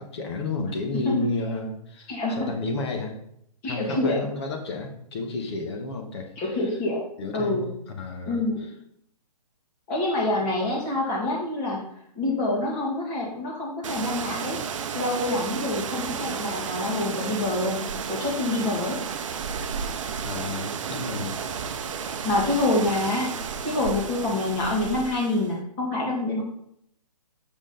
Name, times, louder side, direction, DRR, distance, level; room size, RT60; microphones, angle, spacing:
voice 1, 0.0-3.1 3.6-6.8 7.2-8.4 20.2-21.4, left 3 dB, 45° left, 4 dB, 1.3 m, -32 dB
voice 2, 2.1-2.4 3.6-4.2 6.4-7.1 7.3-7.6 8.3-8.6 9.9-11.8 12.2-14.6 14.9-17.8 18.1-19.0 22.2-23.4 23.6-26.4, left 2 dB, 20° left, -3 dB, 2.0 m, -26 dB
sound 1, 13.8-25.5, right 6 dB, 50° right, 0.7 m, -32 dB
6.3 x 6.2 x 3.9 m, 0.71 s
hypercardioid pair, 165°, 20 cm